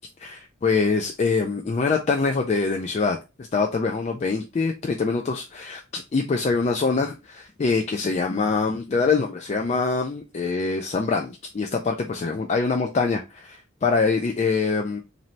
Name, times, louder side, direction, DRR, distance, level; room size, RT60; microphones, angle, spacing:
voice 1, 0.2-3.2 3.5-15.0, left 4 dB, 35° left, 0.3 m, -24 dB
3.0 x 2.7 x 4.2 m
head